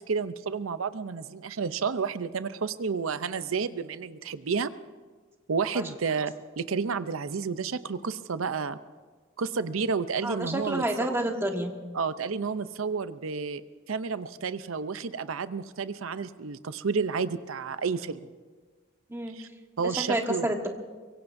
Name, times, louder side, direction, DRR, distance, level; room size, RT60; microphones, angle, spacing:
voice 1, 0.0-4.7 5.5-8.8 9.4-10.8 11.9-13.6 13.9-18.2 19.3-19.5 19.8-20.5, right 5 dB, 90° right, 13 dB, 0.6 m, -31 dB
voice 2, 10.2-11.7 19.1-19.4 19.8-20.7, right 1 dB, 10° right, 2 dB, 1.4 m, -29 dB
24.0 x 22.5 x 2.7 m, 1.4 s
head